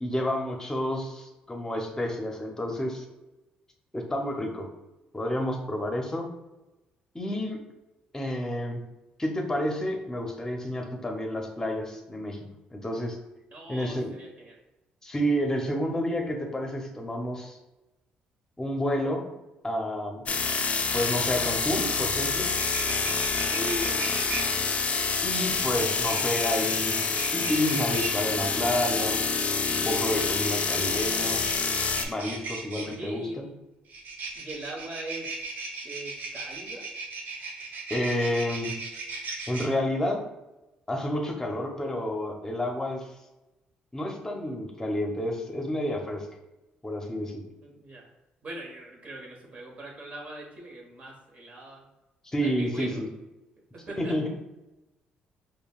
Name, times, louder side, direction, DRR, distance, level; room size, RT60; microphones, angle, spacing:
voice 1, 0.0-3.0 3.9-4.7 5.1-6.3 7.1-7.6 8.1-8.8 9.2-12.4 12.7-13.2 13.7-14.1 15.0-17.6 18.6-19.3 19.6-20.3 20.9-22.5 25.2-27.0 27.3-29.2 29.7-31.4 32.1-33.5 37.9-38.8 39.5-40.2 40.9-43.1 43.9-46.3 46.8-47.4 52.3-53.1 54.0-54.3, left 1 dB, 15° left, 2 dB, 0.8 m, -30 dB
voice 2, 13.5-14.6 23.5-24.1 24.3-24.6 32.8-33.5 34.3-35.3 35.8-36.9 47.6-48.1 48.4-51.8 52.4-53.0 53.7-54.3, right 1 dB, 45° right, -1 dB, 1.2 m, -40 dB
sound 1, 20.3-32.0, left 4 dB, 45° left, 0.4 m, -27 dB
sound 2, 22.4-24.4 25.5-28.1 29.5-32.9 33.9-39.7, right 3 dB, 65° right, 0.8 m, -37 dB
5.1 x 2.3 x 2.4 m, 0.98 s
cardioid pair, 80°, 3 cm